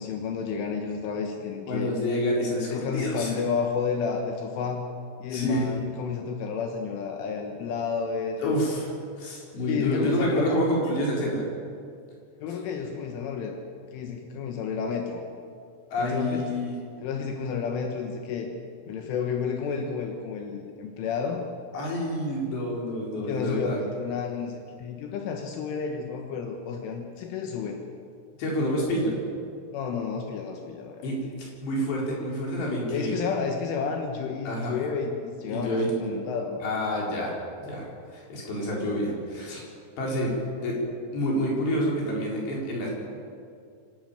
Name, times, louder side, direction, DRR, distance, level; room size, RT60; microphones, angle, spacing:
voice 1, 0.0-1.9 2.7-4.9 5.2-8.7 9.6-10.6 12.4-13.6 13.9-15.2 16.0-16.4 17.0-18.5 18.9-21.4 23.2-27.8 29.7-31.1 32.9-36.6, left 6 dB, 75° left, 3 dB, 3.8 m, -31 dB
voice 2, 1.7-3.4 5.3-5.7 8.4-8.9 9.2-11.4 15.9-16.8 21.7-23.8 28.4-29.2 31.0-33.1 34.5-34.7 35.5-35.9 36.6-37.3 37.6-37.9 38.1-39.7 40.0-40.3 40.6-40.8 41.1-42.9, equal, 60° left, -3 dB, 6.3 m, -28 dB
25.0 x 12.5 x 9.3 m, 2.3 s
omnidirectional pair, 5.7 m